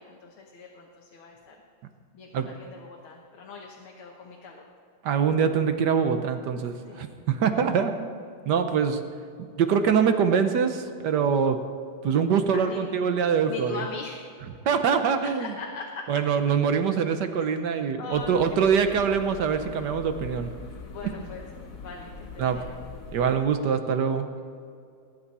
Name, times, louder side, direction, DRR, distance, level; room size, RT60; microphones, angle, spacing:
voice 1, 0.0-1.6 2.1-4.6 6.9-7.1 12.5-12.8 13.5-14.2 15.2-16.0 17.4-17.5 18.0-18.7 20.9-21.5 21.8-22.8 23.2-23.3, left 4 dB, 85° left, 0 dB, 2.0 m, -41 dB
voice 2, 5.0-8.1 8.5-9.0 9.6-11.6 12.0-13.8 14.7-15.5 16.1-20.5 22.4-22.6 23.1-24.3, right 6 dB, 65° right, 8 dB, 1.3 m, -24 dB
sound 1, 18.1-23.4, left 4 dB, 50° left, 1.3 m, -42 dB
19.5 x 9.5 x 4.2 m, 2.3 s
omnidirectional pair, 2.2 m